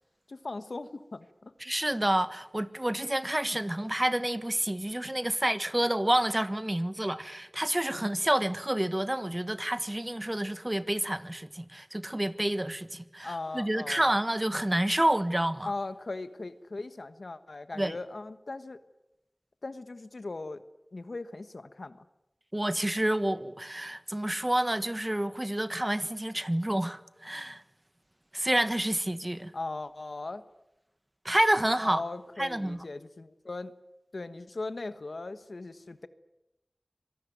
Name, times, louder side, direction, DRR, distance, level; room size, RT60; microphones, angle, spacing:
voice 1, 0.3-1.5 13.2-14.1 15.6-18.8 19.6-20.6 20.9-22.0 29.5-30.4 31.8-33.7 34.1-36.1, left 3 dB, 80° left, 1.3 m, -39 dB
voice 2, 1.6-15.7 17.7-17.9 22.5-27.6 28.3-29.5 31.2-32.0 32.4-32.8, right 1 dB, 25° right, 1.4 m, -29 dB
26.0 x 18.5 x 9.3 m
wide cardioid pair, 45°, 0 cm